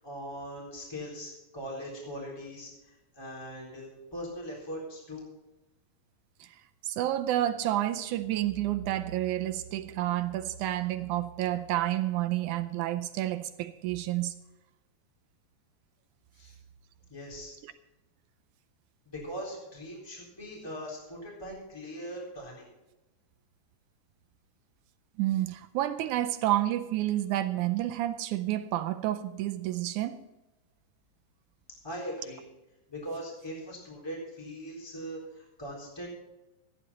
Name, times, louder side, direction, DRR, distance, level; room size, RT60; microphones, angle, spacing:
voice 1, 0.0-2.7 3.1-5.2 16.4-16.5 17.1-17.5 19.0-22.6 31.8-32.4 32.9-36.1, equal, 5° left, 3.6 m, -40 dB
voice 2, 6.4-14.3 17.6-17.7 25.2-30.2, right 14 dB, 80° right, 1.8 m, -30 dB
15.0 x 10.5 x 4.2 m
omnidirectional pair, 4.0 m